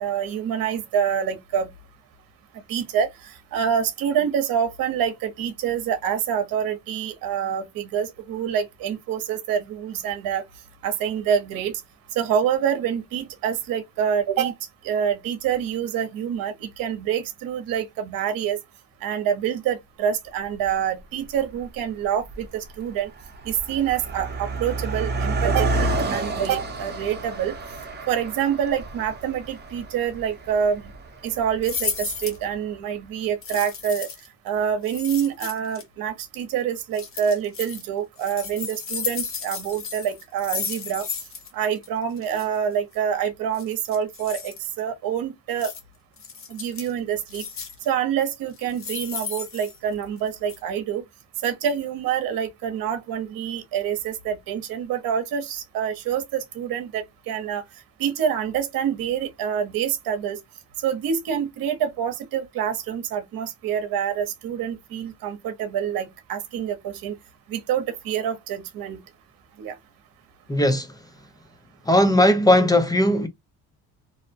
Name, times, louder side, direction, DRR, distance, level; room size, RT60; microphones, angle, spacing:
voice 1, 0.0-1.7 2.7-10.4 10.8-11.7 12.1-14.5 14.8-18.6 19.0-23.1 23.4-25.7 26.1-27.5 28.1-30.8 31.2-34.1 34.4-41.1 41.5-45.7 46.5-47.4 47.9-51.0 51.4-57.6 58.0-60.4 60.8-67.1 67.5-69.0 69.6-69.7, right 8 dB, 85° right, 0.8 m, -26 dB
Car passing by, 20.6-20.7 21.5-21.8 22.0-32.5, right 2 dB, 30° right, 0.8 m, -30 dB
sound 1, 31.6-32.4 33.4-34.3 34.8-35.8 36.9-37.8 38.2-41.5 41.8-41.9 42.2-42.5 43.5-44.6 45.6-45.8 46.2-46.9 47.3-47.9 48.5-50.2 50.5-50.6, left 6 dB, 40° left, 0.8 m, -33 dB
voice 2, 70.5-70.9 71.9-73.3, left 1 dB, 10° left, 0.5 m, -18 dB
2.7 x 2.1 x 2.6 m
cardioid pair, 105°, 34 cm